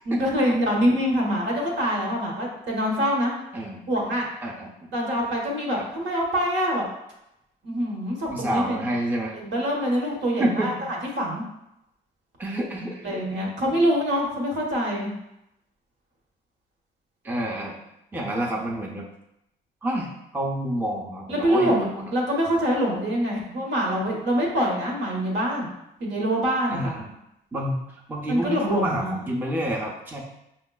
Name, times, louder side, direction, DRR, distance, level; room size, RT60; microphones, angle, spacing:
voice 1, 0.1-3.3 3.9-4.3 4.9-6.9 7.6-8.8 9.4-10.7 11.2-11.4 13.0-15.1 21.3-25.7 26.0-26.9 28.3-29.2, equal, 65° right, -2 dB, 1.1 m, -25 dB
voice 2, 4.4-4.9 8.3-9.3 10.4-10.7 12.4-13.8 17.2-17.8 18.1-19.1 19.8-22.1 26.7-27.1 27.5-30.2, right 1 dB, 10° right, -1 dB, 0.6 m, -29 dB
5.2 x 2.2 x 2.3 m, 0.84 s
cardioid pair, 75°, 20 cm